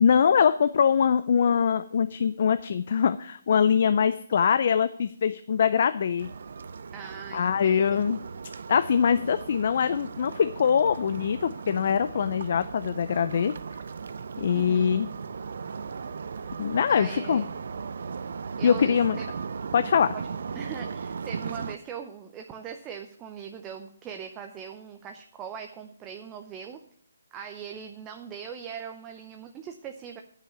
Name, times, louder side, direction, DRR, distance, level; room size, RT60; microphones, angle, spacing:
voice 1, 0.0-6.3 7.3-8.2 8.7-13.5 14.4-15.1 16.6-17.4 18.6-19.2 19.7-20.1, left 7 dB, 50° left, 12 dB, 0.4 m, -23 dB
sound 1, 6.2-21.8, right 5 dB, 60° right, 0.5 m, -37 dB
voice 2, 6.9-7.8 14.5-15.0 16.9-17.5 18.6-19.3 20.1-20.2 20.5-26.8 27.3-30.2, right 7 dB, 15° right, 4 dB, 0.6 m, -41 dB
9.8 x 5.7 x 7.0 m, 0.63 s
hypercardioid pair, 155°, 0 cm